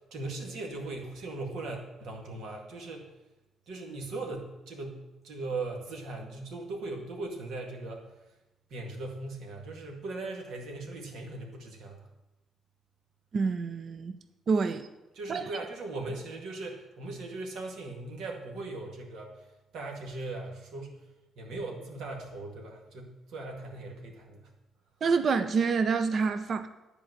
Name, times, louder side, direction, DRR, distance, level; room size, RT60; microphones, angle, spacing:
voice 1, 0.1-3.1 3.7-8.1 8.7-12.0 15.1-19.3 19.7-20.9 21.4-24.5, right 2 dB, 80° right, 1 dB, 2.0 m, -39 dB
voice 2, 13.3-14.2 14.5-14.9 15.3-15.5 25.0-26.7, right 5 dB, 50° right, 10 dB, 0.6 m, -27 dB
10.5 x 4.6 x 7.8 m, 1.0 s
cardioid pair, 90°, 0 cm